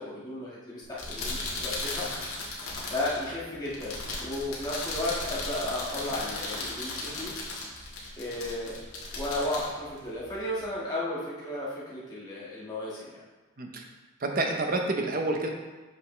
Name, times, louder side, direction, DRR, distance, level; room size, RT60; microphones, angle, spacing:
voice 1, 0.0-2.1 2.8-7.3 8.2-8.8 9.1-13.2, left 1 dB, 20° left, -8 dB, 1.5 m, -34 dB
sound 1, 0.8-10.6, left 2 dB, 75° left, 1.6 m, -36 dB
voice 2, 14.2-15.5, right 2 dB, 40° right, 3 dB, 0.7 m, -28 dB
7.9 x 5.5 x 3.2 m, 1.3 s
head